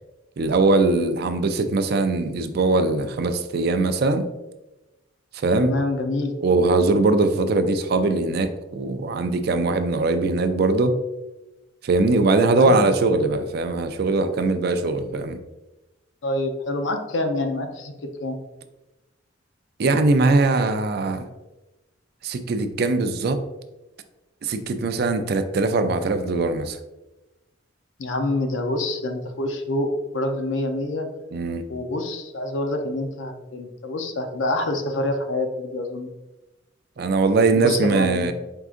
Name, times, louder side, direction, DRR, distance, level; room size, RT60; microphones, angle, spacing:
voice 1, 0.4-4.3 5.3-5.7 6.4-11.0 11.8-15.4 19.8-21.3 22.2-23.4 24.4-26.8 31.3-31.6 37.0-38.3, right 3 dB, 55° right, 9 dB, 0.4 m, -21 dB
voice 2, 5.6-6.3 12.6-12.9 16.2-17.9 18.2-18.4 28.0-29.9 30.1-31.1 31.7-36.1 37.5-38.3, left 2 dB, 80° left, 5 dB, 0.6 m, -26 dB
4.7 x 3.7 x 2.5 m, 1.0 s
head